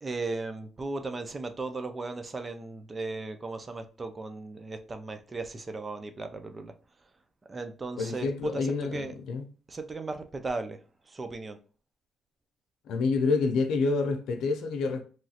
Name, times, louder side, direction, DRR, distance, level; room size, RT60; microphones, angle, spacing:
voice 1, 0.0-6.7 7.5-9.1 9.7-10.8 11.1-11.6, right 3 dB, 30° right, 0.4 m, -36 dB
voice 2, 8.0-9.4 12.9-15.0, left 4 dB, 80° left, 0.5 m, -28 dB
3.1 x 2.3 x 2.7 m
cardioid pair, 90°, 0 cm